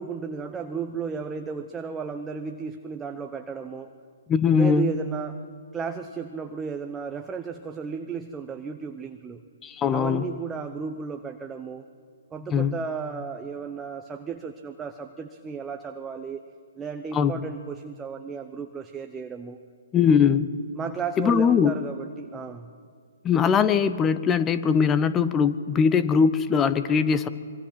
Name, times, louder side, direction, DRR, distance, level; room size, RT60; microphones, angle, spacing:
voice 1, 0.0-3.9 4.6-5.4 5.7-9.4 9.9-11.8 12.3-16.4 16.8-19.6 20.7-22.7, right 6 dB, 10° right, 5 dB, 0.9 m, -34 dB
voice 2, 4.3-4.9 9.6-10.2 12.5-12.7 17.1-17.3 19.9-20.5 21.2-21.8 23.2-27.3, left 6 dB, 15° left, 14 dB, 0.8 m, -21 dB
25.0 x 23.0 x 5.9 m, 2.2 s
figure-of-eight pair, 125°, 0 cm